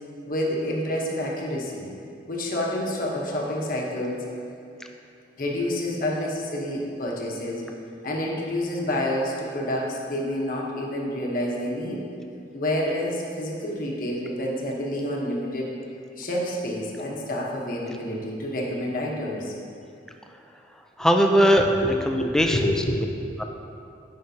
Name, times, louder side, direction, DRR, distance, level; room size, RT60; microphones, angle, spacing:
voice 1, 0.2-1.9 2.3-4.2 5.4-7.7 8.0-12.0 12.5-15.7 16.2-19.5 21.8-23.1, left 1 dB, 50° left, -2 dB, 1.0 m, -28 dB
voice 2, 21.0-22.7 23.4-23.5, equal, 5° left, 3 dB, 0.4 m, -20 dB
10.5 x 5.1 x 2.8 m, 2.5 s
head